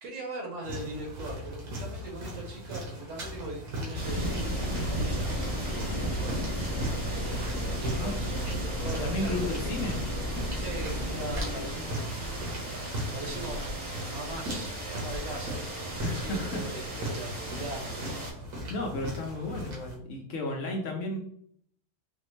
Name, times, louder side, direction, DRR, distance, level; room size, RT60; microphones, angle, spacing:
voice 1, 0.0-6.5 7.3-8.3 8.8-9.7 10.5-12.2 13.1-18.0, right 2 dB, 60° right, 0 dB, 1.1 m, -40 dB
sound 1, 0.6-20.0, equal, 80° right, 1.6 m, -39 dB
sound 2, 3.9-18.3, right 1 dB, 35° right, 0.9 m, -36 dB
sound 3, 4.1-12.0, left 1 dB, 90° left, 0.5 m, -35 dB
voice 2, 9.0-10.0 16.0-16.6 18.7-21.2, left 2 dB, 65° left, 1 dB, 0.8 m, -33 dB
4.1 x 2.0 x 3.0 m, 0.67 s
omnidirectional pair, 1.6 m